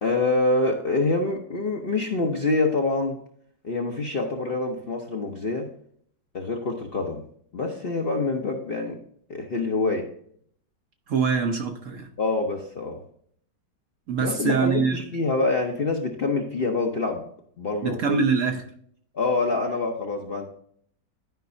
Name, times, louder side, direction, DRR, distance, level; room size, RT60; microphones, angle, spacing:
voice 1, 0.0-3.2 3.6-5.7 6.3-7.2 7.5-9.0 9.3-10.1 12.2-13.0 14.2-17.3 17.6-18.0 19.1-20.5, left 3 dB, 45° left, 2 dB, 0.8 m, -26 dB
voice 2, 11.1-12.1 14.1-15.0 17.8-18.7, right 5 dB, 55° right, 4 dB, 1.0 m, -24 dB
11.5 x 5.2 x 2.6 m, 0.63 s
omnidirectional pair, 1.9 m